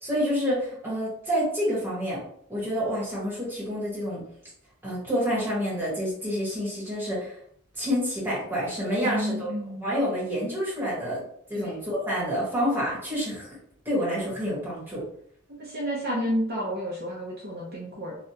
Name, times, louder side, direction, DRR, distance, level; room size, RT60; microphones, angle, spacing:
voice 1, 0.0-2.2 2.5-4.2 4.8-7.4 7.7-9.5 9.8-11.2 11.5-13.6 13.8-15.0, equal, 10° right, -8 dB, 1.5 m, -28 dB
voice 2, 9.0-9.9 11.5-11.7 15.6-18.2, equal, 50° right, -5 dB, 0.7 m, -30 dB
3.2 x 2.5 x 2.8 m, 0.68 s
head